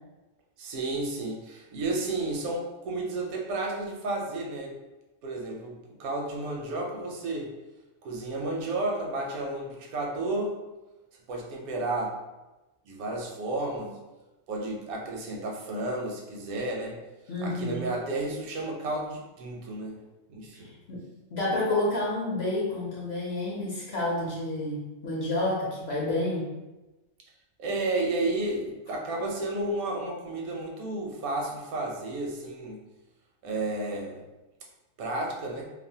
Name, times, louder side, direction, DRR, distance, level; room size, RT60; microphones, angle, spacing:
voice 1, 0.6-4.7 5.2-7.5 8.0-10.6 11.3-12.2 12.9-14.0 14.5-17.0 17.4-20.0 20.3-20.7 27.6-32.8 33.4-34.2 35.0-35.7, right 2 dB, 85° right, 0 dB, 1.0 m, -32 dB
voice 2, 17.3-17.9 20.9-21.0 21.3-26.4, left 2 dB, 60° left, -5 dB, 0.8 m, -29 dB
2.6 x 2.1 x 2.6 m, 1.1 s
omnidirectional pair, 1.5 m